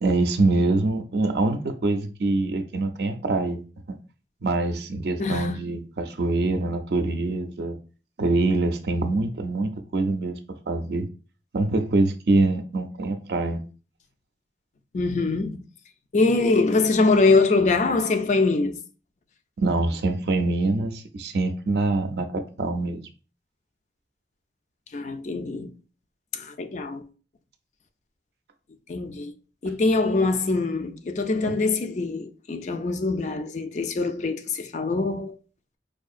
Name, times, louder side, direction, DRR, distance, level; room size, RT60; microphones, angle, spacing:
voice 1, 0.0-3.6 4.4-7.8 8.2-10.4 10.7-11.1 11.5-13.6 19.6-23.0 31.4-31.5, right 2 dB, 65° right, 0.5 m, -24 dB
voice 2, 5.2-5.6 14.9-15.6 16.1-18.8 24.9-25.7 26.3-27.0 28.9-29.3 29.6-35.3, left 3 dB, 40° left, 0.4 m, -23 dB
4.6 x 2.7 x 2.4 m
head